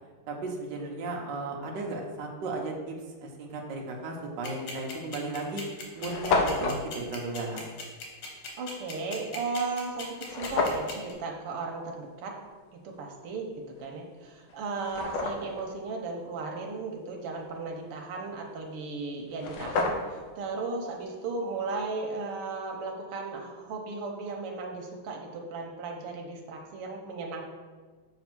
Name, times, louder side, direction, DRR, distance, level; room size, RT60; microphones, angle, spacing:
voice 1, 0.3-5.6 5.9-7.6, right 2 dB, 60° right, 0 dB, 1.5 m, -35 dB
sound 1, 4.4-11.1, left 4 dB, 90° left, 2.2 m, -39 dB
sound 2, 4.6-4.7 5.4-5.5 5.6-5.7 5.9-6.8 10.3-10.9 13.8-13.9 14.5-15.6 19.0-19.1 19.3-20.3, left 3 dB, 65° left, 1.4 m, -29 dB
voice 2, 8.6-12.3 12.8-13.5 13.8-27.4, right 3 dB, 90° right, 1 dB, 1.9 m, -35 dB
6.9 x 3.5 x 5.9 m, 1.4 s
omnidirectional pair, 2.4 m